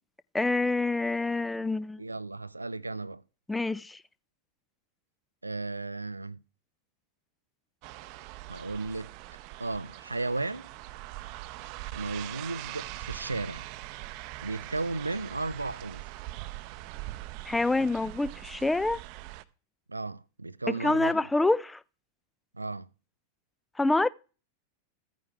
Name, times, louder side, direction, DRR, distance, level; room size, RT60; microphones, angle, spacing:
voice 1, 0.3-2.0 3.5-4.0 17.5-19.0 20.7-21.8 23.8-24.1, left 2 dB, 5° left, 0.4 m, -26 dB
voice 2, 2.0-3.2 5.4-6.4 8.5-9.1 9.6-10.7 11.9-13.7 14.4-16.0 19.9-21.2 22.5-22.9, right 3 dB, 80° right, 0.4 m, -34 dB
sound 1, 7.8-19.4, right 17 dB, 45° right, 0.7 m, -42 dB
15.0 x 9.2 x 3.4 m
figure-of-eight pair, 90°, 0 cm